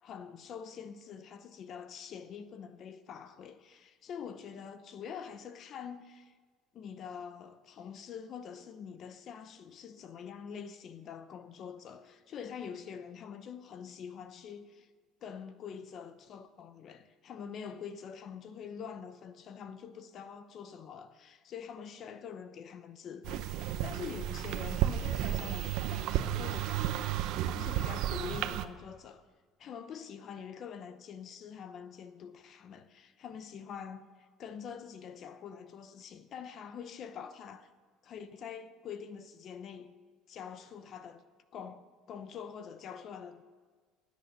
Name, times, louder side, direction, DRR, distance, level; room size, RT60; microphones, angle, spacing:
voice 1, 0.0-6.4 6.7-14.9 15.2-29.2 29.6-37.7 38.0-39.9 40.3-41.3 41.5-43.4, left 7 dB, 40° left, 0.8 m, -45 dB
sound 1, 23.2-28.6, right 12 dB, 60° right, 0.8 m, -32 dB
20.0 x 8.4 x 6.7 m
cardioid pair, 160°, 0 cm